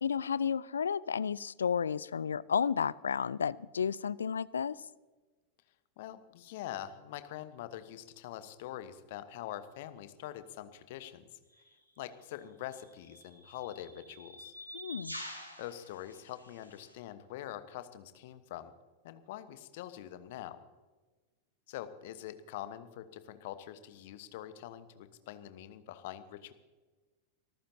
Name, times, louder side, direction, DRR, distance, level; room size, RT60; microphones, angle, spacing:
voice 1, 0.0-4.8 14.7-15.2, left 7 dB, 70° left, 21 dB, 0.4 m, -32 dB
voice 2, 6.0-11.4 12.0-14.5 15.6-18.7 19.0-20.6 21.7-26.5, left 12 dB, 50° left, 11 dB, 1.1 m, -44 dB
sound 1, 11.5-11.7 12.7-16.9, equal, 85° right, 3.1 m, -48 dB
25.5 x 14.5 x 2.8 m, 1.3 s
figure-of-eight pair, 90°, 0 cm